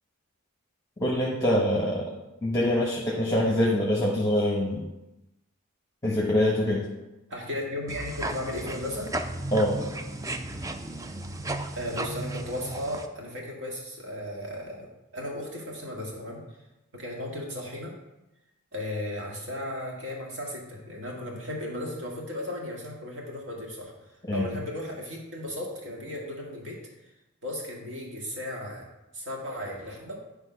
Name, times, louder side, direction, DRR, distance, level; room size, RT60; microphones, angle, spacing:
voice 1, 1.0-2.1 2.4-4.9 6.0-6.8 9.5-9.9 24.3-24.4, left 1 dB, 15° left, -3 dB, 1.1 m, -24 dB
voice 2, 7.3-9.1 11.7-16.4 16.9-17.9 18.7-23.9 24.3-26.8 27.4-28.8 29.1-30.2, left 1 dB, 60° right, -2 dB, 1.9 m, -35 dB
sound 1, 7.9-13.1, right 1 dB, 15° right, 0.4 m, -34 dB
10.0 x 3.4 x 5.6 m, 0.98 s
head